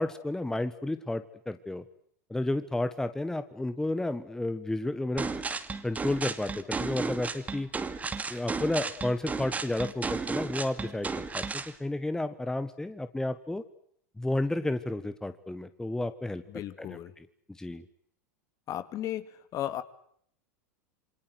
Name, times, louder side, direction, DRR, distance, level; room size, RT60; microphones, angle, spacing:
voice 1, 0.0-1.8 2.3-5.4 5.8-7.7 8.3-13.6 14.2-16.4 16.8-17.3 17.6-17.9, left 2 dB, 5° left, 11 dB, 1.4 m, -32 dB
sound 1, 5.2-11.7, right 4 dB, 15° right, 2.4 m, -34 dB
voice 2, 16.5-17.1 18.7-19.2 19.5-19.8, left 12 dB, 40° left, 13 dB, 2.3 m, -34 dB
28.0 x 24.0 x 8.0 m, 0.66 s
hypercardioid pair, 100°, 9 cm